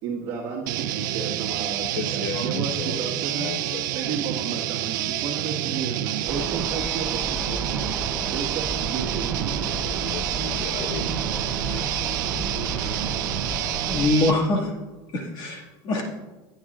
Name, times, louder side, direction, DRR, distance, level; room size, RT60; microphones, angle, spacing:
voice 1, 0.0-3.5 3.9-7.9 8.3-10.2, right 6 dB, 45° right, -4 dB, 1.7 m, -33 dB
sound 1, 0.7-14.4, right 13 dB, 80° right, 0.6 m, -28 dB
voice 2, 1.9-4.2 10.0-11.1, left 5 dB, 65° left, 5 dB, 1.3 m, -34 dB
sound 2, 6.3-14.1, right 1 dB, 10° right, 0.9 m, -33 dB
voice 3, 12.7-13.1 13.9-14.7 15.1-16.0, left 2 dB, 45° left, -1 dB, 2.0 m, -25 dB
16.5 x 9.6 x 2.5 m, 1.2 s
supercardioid pair, 150°, 10 cm